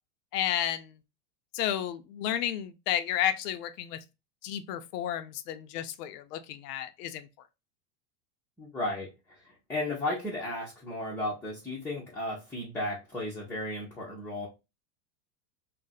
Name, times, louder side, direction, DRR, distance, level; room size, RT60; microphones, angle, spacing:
voice 1, 0.3-0.9 1.5-4.0 4.4-7.3, left 11 dB, 75° left, 0.6 m, -32 dB
voice 2, 8.6-9.1 9.7-14.5, left 1 dB, 5° left, 0.5 m, -34 dB
2.5 x 2.1 x 3.9 m
supercardioid pair, 135°, 47 cm